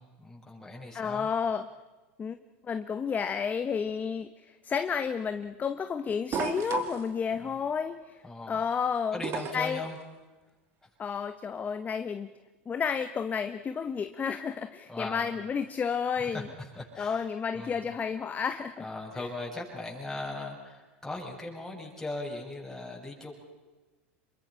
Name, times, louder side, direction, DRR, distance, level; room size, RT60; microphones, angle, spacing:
voice 1, 0.0-1.3 7.3-7.6 8.2-8.6 9.1-10.0 14.9-15.3 16.2-17.3 17.5-17.8 18.8-23.3, left 2 dB, 5° left, -2 dB, 8.0 m, -39 dB
voice 2, 0.9-1.7 2.2-2.4 2.7-8.2 8.5-9.2 9.5-9.8 11.0-12.3 12.7-16.5 17.0-18.8, left 6 dB, 25° left, 10 dB, 1.0 m, -31 dB
Stacking wood, 6.3-7.1 9.2-9.8 11.3-11.4, right 7 dB, 40° right, 2.9 m, -32 dB
28.0 x 23.0 x 5.8 m, 1.2 s
hypercardioid pair, 100°, 7 cm